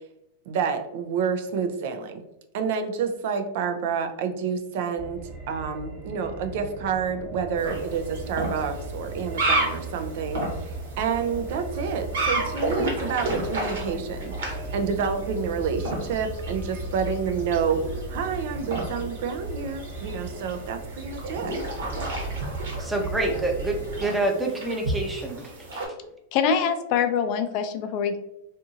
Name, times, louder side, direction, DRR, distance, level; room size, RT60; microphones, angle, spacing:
voice 1, 0.5-2.2 2.5-21.5, right 6 dB, 60° right, 7 dB, 0.4 m, -29 dB
sound 1, 5.0-24.0, right 2 dB, 30° right, 1.0 m, -36 dB
sound 2, 7.6-25.9, right 2 dB, 75° right, 1.1 m, -33 dB
voice 2, 22.8-25.8, right 2 dB, 10° right, 2 dB, 0.6 m, -27 dB
voice 3, 26.3-28.2, left 7 dB, 50° left, 8 dB, 0.4 m, -24 dB
2.7 x 2.6 x 2.4 m, 0.90 s
hypercardioid pair, 110°, 0 cm